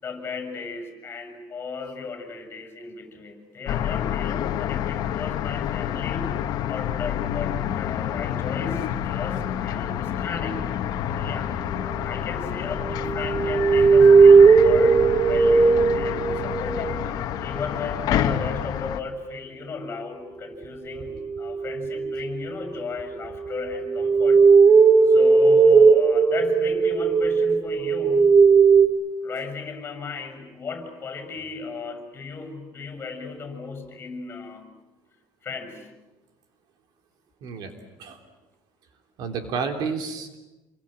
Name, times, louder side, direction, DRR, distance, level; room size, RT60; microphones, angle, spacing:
voice 1, 0.0-6.3 6.7-10.8 11.2-11.6 12.0-24.4 25.0-28.3 29.2-34.7 35.4-35.9, left 4 dB, 30° left, 7 dB, 6.8 m, -35 dB
sound 1, 3.6-19.0, left 10 dB, 60° left, 1.6 m, -28 dB
sound 2, 12.8-16.9 21.0-22.5 23.3-28.9, right 5 dB, 25° right, 3.0 m, -17 dB
voice 2, 37.4-37.7 38.0-38.2 39.2-40.4, right 5 dB, 65° right, 6 dB, 3.4 m, -30 dB
27.5 x 23.0 x 9.0 m, 1.1 s
cardioid pair, 150°, 8 cm